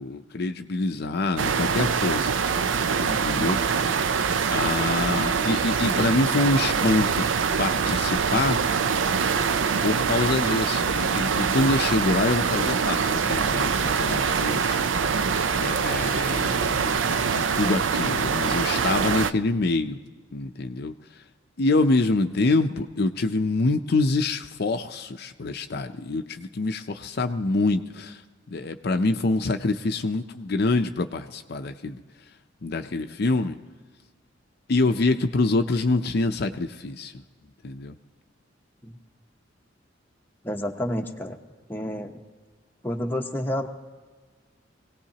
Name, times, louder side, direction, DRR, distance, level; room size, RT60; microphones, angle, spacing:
voice 1, 0.0-2.5 3.0-3.6 4.5-7.3 7.6-8.6 9.8-14.9 15.6-20.0 20.3-20.9 21.6-28.2 28.5-32.0 32.6-33.6 34.7-37.2 37.6-37.9, left 3 dB, 55° left, 6 dB, 0.6 m, -25 dB
sound 1, 1.4-19.3, right 6 dB, 80° right, 0.5 m, -24 dB
voice 2, 40.4-41.4 41.7-42.2 42.8-43.7, left 1 dB, 10° left, 2 dB, 0.8 m, -29 dB
23.5 x 17.5 x 2.9 m, 1.4 s
head